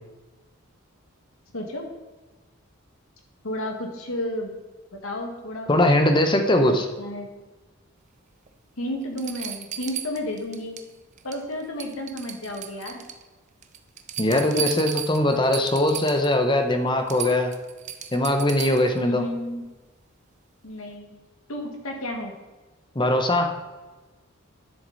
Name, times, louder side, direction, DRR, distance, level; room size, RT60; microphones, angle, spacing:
voice 1, 1.5-1.9 3.4-4.5 4.9-5.7 6.6-7.3 8.8-10.8 11.2-13.0 14.3-14.7 19.0-19.6 20.6-21.1 21.5-22.3, left 1 dB, 70° left, 2 dB, 1.8 m, -32 dB
voice 2, 5.7-6.9 14.2-17.5 18.1-19.2 22.9-23.6, left 1 dB, 20° left, 5 dB, 0.9 m, -21 dB
sound 1, 8.5-8.6 9.2-10.9 11.2-11.5 11.8-13.2 13.6-16.3 16.7-16.8 17.1-19.0 20.7-20.8, right 10 dB, 35° right, 0.5 m, -35 dB
10.5 x 6.8 x 4.1 m, 1.2 s
head